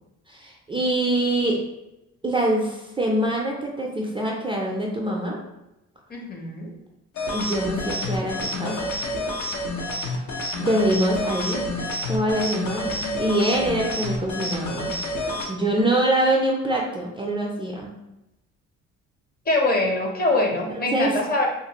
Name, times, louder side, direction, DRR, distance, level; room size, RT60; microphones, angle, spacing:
voice 1, 0.3-1.6 2.2-5.4 7.3-9.0 10.6-11.7 12.1-15.0 15.5-17.9 20.8-21.2, right 1 dB, 15° right, -2 dB, 0.4 m, -24 dB
voice 2, 6.1-6.7 19.5-21.5, left 2 dB, 30° left, 0 dB, 0.7 m, -23 dB
sound 1, 7.1-15.5, left 1 dB, 70° left, 0.7 m, -29 dB
2.6 x 2.5 x 2.8 m, 0.92 s
cardioid pair, 90°, 30 cm